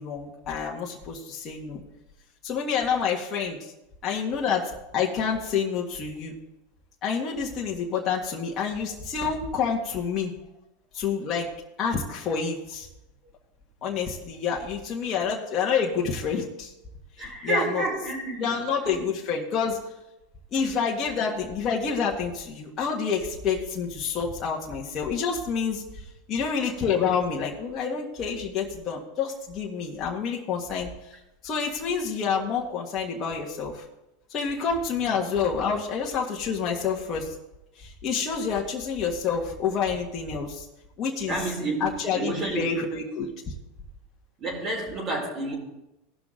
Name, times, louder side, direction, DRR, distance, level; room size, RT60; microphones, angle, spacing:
voice 1, 0.0-1.8 2.4-3.7 4.0-6.3 7.0-10.3 10.9-11.5 11.8-12.9 13.8-16.7 17.4-17.8 18.4-19.8 20.5-25.8 26.3-30.9 31.4-33.8 34.3-37.4 37.8-40.7 41.0-41.4 41.8-43.3, left 6 dB, 40° left, -2 dB, 1.7 m, -28 dB
voice 2, 17.2-18.5 19.0-19.1 41.3-42.7 44.4-45.5, right 2 dB, 35° right, -4 dB, 4.3 m, -29 dB
18.0 x 6.1 x 3.9 m, 0.93 s
supercardioid pair, 115°, 0 cm